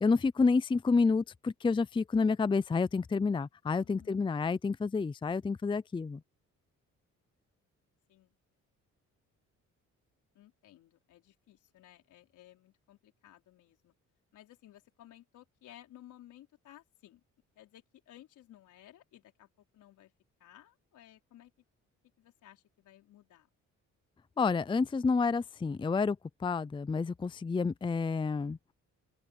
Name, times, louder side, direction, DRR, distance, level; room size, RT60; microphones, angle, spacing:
voice 1, 0.0-6.2 24.4-26.2 26.4-28.6, left 4 dB, 15° left, 0.5 m, -29 dB
voice 2, 3.6-4.2 8.1-8.4 10.3-13.9 14.3-17.2 17.6-20.1 20.4-21.5 22.2-23.5, left 13 dB, 80° left, 4.4 m, -57 dB
open air
cardioid pair, 90°, 30 cm